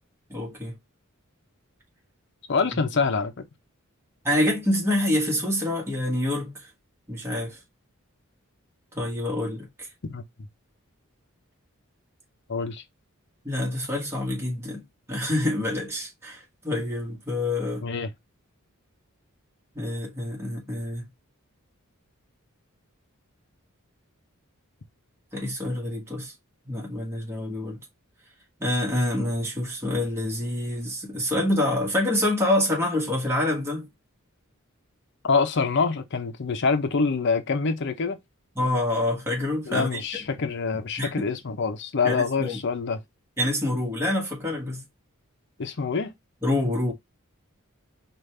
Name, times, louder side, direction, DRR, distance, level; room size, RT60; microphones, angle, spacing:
voice 1, 0.3-0.8 2.7-2.8 4.2-6.7 7.1-7.6 8.9-9.9 13.4-17.9 19.7-21.1 25.3-26.3 26.6-27.8 28.6-33.9 38.5-40.0 41.0-41.2 42.0-42.6 43.4-44.8 46.4-46.9, left 1 dB, 10° right, 1.4 m, -27 dB
voice 2, 2.5-3.5 10.1-10.2 12.5-12.8 17.8-18.1 35.2-38.2 39.7-43.0 45.6-46.1, left 4 dB, 55° left, 0.7 m, -25 dB
5.1 x 2.5 x 3.2 m
head